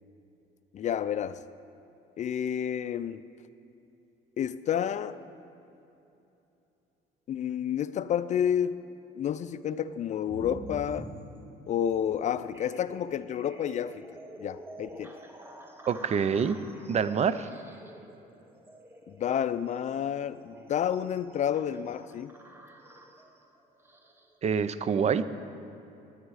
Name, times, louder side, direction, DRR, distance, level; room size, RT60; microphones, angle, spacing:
voice 1, 0.7-1.4 2.2-3.2 4.4-5.2 7.3-8.8 9.2-11.1 11.7-14.1 14.4-15.2 19.1-22.3, left 9 dB, 45° left, 14 dB, 0.4 m, -30 dB
sound 1, 10.3-24.4, right 1 dB, 15° right, 1.3 m, -48 dB
voice 2, 15.9-16.6 16.9-17.5 24.4-25.2, right 6 dB, 40° right, 14 dB, 0.5 m, -26 dB
17.5 x 10.0 x 4.8 m, 2.8 s
cardioid pair, 110°, 17 cm